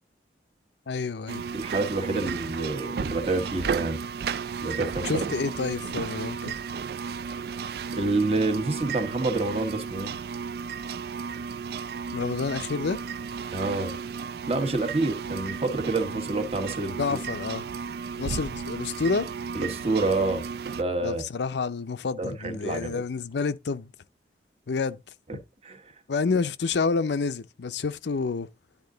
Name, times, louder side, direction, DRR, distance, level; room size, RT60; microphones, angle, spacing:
voice 1, 0.9-1.4 5.0-6.5 12.1-13.0 17.0-17.7 18.2-19.3 21.0-23.9 24.7-25.0 25.3-25.4 26.1-28.5, left 4 dB, 70° left, 0.5 m, -28 dB
sound 1, 1.3-20.8, right 6 dB, 55° right, 0.3 m, -34 dB
voice 2, 1.5-4.0 4.6-5.2 7.9-10.1 13.5-13.9 14.5-17.2 19.5-20.5 20.8-21.2 22.2-23.0 25.3-25.4 25.6-25.8, right 2 dB, 35° right, 1.3 m, -28 dB
10.5 x 3.7 x 3.8 m
head